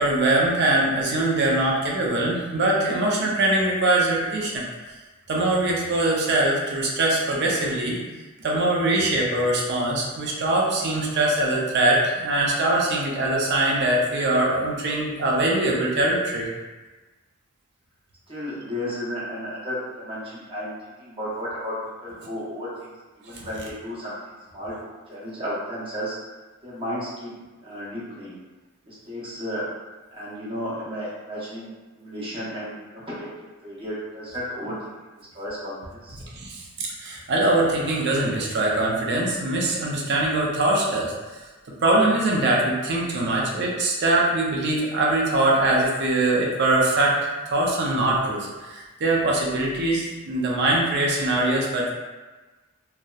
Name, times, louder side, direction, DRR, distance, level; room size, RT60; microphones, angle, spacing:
voice 1, 0.0-4.6 5.3-8.0 8.4-16.5 23.3-23.5 36.3-41.1 41.8-47.2 47.5-51.9, right 2 dB, 50° right, -2 dB, 0.5 m, -22 dB
voice 2, 18.3-20.7 21.0-21.7 22.0-22.9 23.2-24.1 24.5-24.7 25.1-26.2 26.6-27.3 27.6-28.4 28.9-29.6 30.1-31.7 32.0-34.7 35.3-36.2, equal, 25° right, -9 dB, 0.8 m, -33 dB
2.7 x 2.0 x 2.3 m, 1.2 s
head